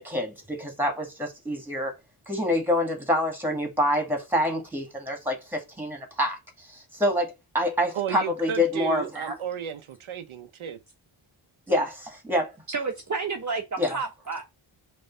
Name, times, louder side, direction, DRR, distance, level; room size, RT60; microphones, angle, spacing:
voice 1, 0.0-1.9 2.3-9.3 11.7-12.5 13.8-14.0, left 1 dB, 5° right, 2.1 m, -27 dB
voice 2, 7.9-10.8, right 9 dB, 75° right, 0.9 m, -33 dB
voice 3, 12.7-14.4, right 4 dB, 35° right, 1.1 m, -30 dB
5.5 x 3.3 x 5.5 m
wide cardioid pair, 115°, 49 cm